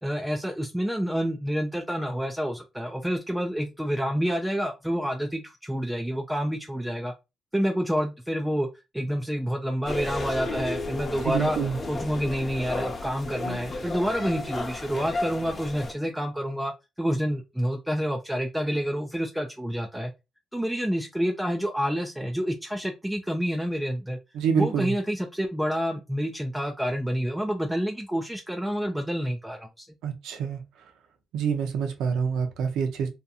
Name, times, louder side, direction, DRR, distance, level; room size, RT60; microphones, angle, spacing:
voice 1, 0.0-7.1 7.5-8.7 8.9-11.6 11.9-20.1 20.5-24.2 24.5-29.9, equal, 5° right, 0.3 m, -28 dB
sound 1, 9.9-15.9, left 2 dB, 35° left, 0.7 m, -33 dB
voice 2, 11.2-11.8 24.3-24.9 30.0-30.6 31.3-33.1, right 6 dB, 85° right, 0.5 m, -27 dB
2.7 x 2.5 x 2.3 m
cardioid pair, 90°, 0 cm